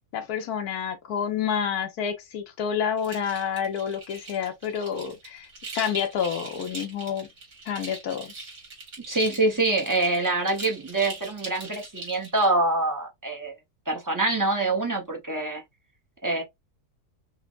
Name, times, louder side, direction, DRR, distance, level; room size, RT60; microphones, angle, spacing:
voice 1, 0.1-5.5 5.7-7.3 7.7-8.3, left 8 dB, 75° left, 1.3 m, -29 dB
sound 1, 3.0-12.4, right 3 dB, 85° right, 2.6 m, -41 dB
voice 2, 9.1-13.5 13.9-15.6 16.2-16.4, right 2 dB, 30° right, 0.3 m, -25 dB
5.6 x 2.0 x 2.4 m
omnidirectional pair, 1.7 m